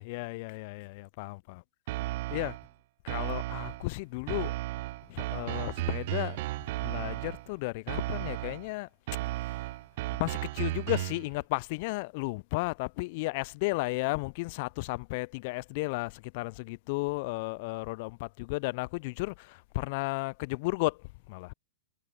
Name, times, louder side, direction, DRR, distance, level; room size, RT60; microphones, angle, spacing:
voice 1, 0.1-1.6 2.3-2.6 3.0-4.6 5.1-6.4 6.8-8.9 10.2-21.5, left 25 dB, 45° left, 0.3 m, -34 dB
sound 1, 1.9-2.7 3.1-3.9 4.3-7.5 7.9-8.7 9.1-11.3, right 18 dB, 50° right, 0.3 m, -34 dB
hypercardioid pair, 115°, 0 cm